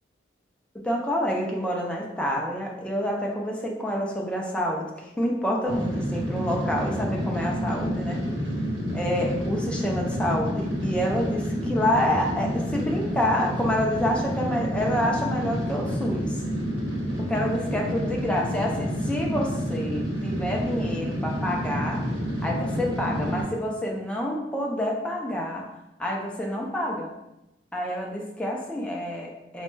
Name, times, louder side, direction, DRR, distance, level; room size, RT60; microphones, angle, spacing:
voice 1, 0.8-8.2 8.9-16.4 17.2-22.0 22.4-25.7 26.0-27.1 27.7-29.6, equal, 5° left, -2 dB, 0.5 m, -28 dB
sound 1, 5.7-23.4, equal, 70° right, 1.3 m, -29 dB
4.7 x 3.0 x 2.2 m, 0.93 s
head